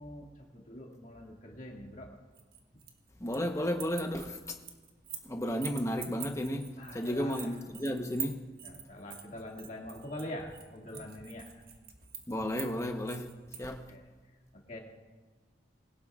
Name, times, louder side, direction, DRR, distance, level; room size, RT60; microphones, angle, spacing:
voice 1, 0.0-2.1 6.8-7.5 8.6-11.6 13.9-14.0 14.7-14.8, left 1 dB, 40° left, 2.1 m, -44 dB
sound 1, 2.3-3.5 3.7-5.3 5.6-13.7, right 8 dB, 50° right, 1.3 m, -44 dB
voice 2, 3.2-4.6 5.2-8.4 12.3-13.3 13.6-13.8, equal, 15° left, 1.0 m, -33 dB
21.0 x 17.5 x 2.4 m
head